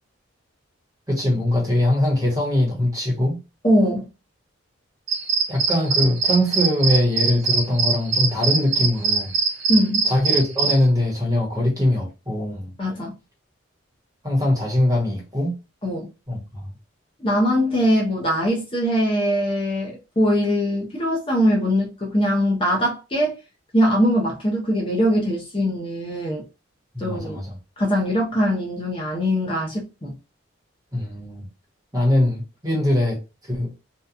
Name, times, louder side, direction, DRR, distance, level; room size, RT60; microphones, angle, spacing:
voice 1, 1.1-3.4 5.5-9.3 10.0-12.7 14.2-15.5 16.3-16.7 26.9-27.6 30.9-31.5 31.9-33.2 33.5-33.7, left 1 dB, 15° right, 1.0 m, -22 dB
voice 2, 3.6-4.1 9.7-10.1 12.8-13.1 15.8-16.1 17.2-23.3 23.7-26.4 27.0-27.4 27.8-30.1, equal, 25° left, 0.6 m, -21 dB
sound 1, 5.1-10.8, right 5 dB, 60° right, 0.6 m, -22 dB
2.8 x 2.3 x 2.3 m
head